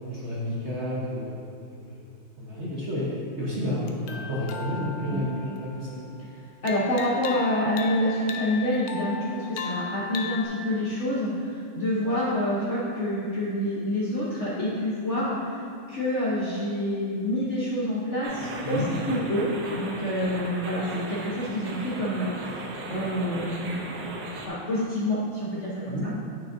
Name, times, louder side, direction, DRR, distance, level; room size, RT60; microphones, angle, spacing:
voice 1, 0.1-2.0 2.4-6.1 18.6-18.9 20.3-20.4 25.9-26.1, left 1 dB, 45° right, -7 dB, 1.0 m, -31 dB
sound 1, 3.9-6.1 6.7-10.5, left 6 dB, 90° left, 0.7 m, -37 dB
voice 2, 6.6-18.8 19.1-19.5 19.7-23.9 24.5-26.0, left 1 dB, 50° left, -8 dB, 0.9 m, -27 dB
sound 2, 18.2-24.5, right 2 dB, 70° right, 1.4 m, -37 dB
9.1 x 6.1 x 2.6 m, 2.4 s
omnidirectional pair, 2.2 m